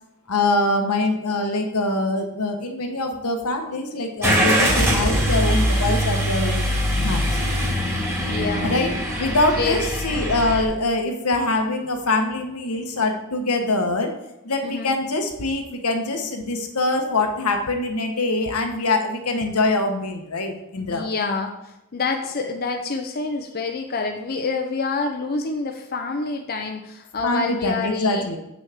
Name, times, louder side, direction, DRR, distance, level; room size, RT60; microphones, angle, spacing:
voice 1, 0.3-6.7 7.0-7.4 8.6-8.9 9.2-14.1 14.4-21.0 27.2-28.4, left 2 dB, 80° left, 4 dB, 1.2 m, -24 dB
Car / Engine starting, 4.2-10.6, equal, 10° right, 2.0 m, -22 dB
voice 2, 8.2-8.8 9.6-9.8 14.6-15.0 20.9-28.4, left 4 dB, 45° left, 3 dB, 0.6 m, -27 dB
8.1 x 6.3 x 3.5 m, 0.88 s
head